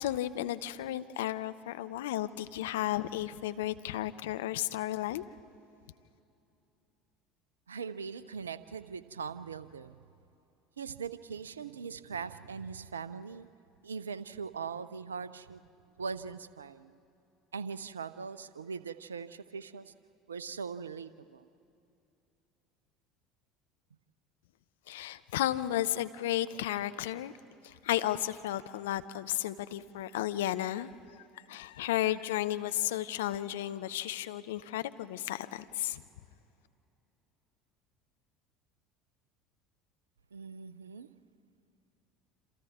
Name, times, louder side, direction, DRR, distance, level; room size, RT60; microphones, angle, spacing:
voice 1, 0.0-5.3 24.9-27.3 27.6-36.0, left 13 dB, 75° left, 12 dB, 0.7 m, -33 dB
voice 2, 7.7-10.0 10.8-13.5 13.8-15.6 16.0-17.0 17.5-19.9 20.3-21.5 40.3-41.1, right 5 dB, 85° right, 15 dB, 0.6 m, -41 dB
28.0 x 27.5 x 3.7 m, 2.7 s
hypercardioid pair, 70°, 0 cm